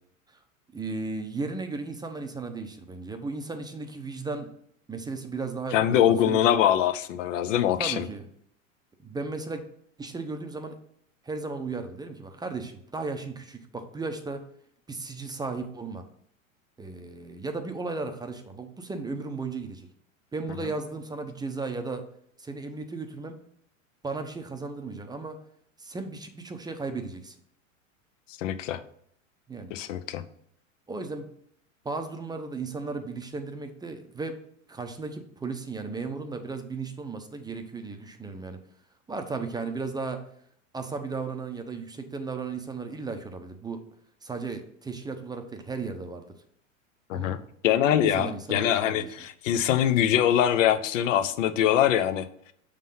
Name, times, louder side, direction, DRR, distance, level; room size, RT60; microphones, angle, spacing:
voice 1, 0.7-4.5 4.9-6.4 7.8-8.3 9.0-9.6 10.0-10.8 11.2-14.4 14.9-16.0 16.8-19.9 20.3-22.1 22.4-23.4 24.0-25.4 25.8-27.3 29.5-29.7 30.9-31.3 31.8-34.4 34.7-38.6 39.1-40.2 40.7-43.8 44.2-46.3 47.1-47.4 48.0-49.1, right 3 dB, 10° right, 6 dB, 0.6 m, -35 dB
voice 2, 5.7-8.0 28.4-28.8 29.7-30.2 47.1-47.4 47.6-52.2, left 10 dB, 70° left, 12 dB, 0.8 m, -23 dB
6.4 x 3.8 x 5.5 m, 0.66 s
hypercardioid pair, 110°, 40 cm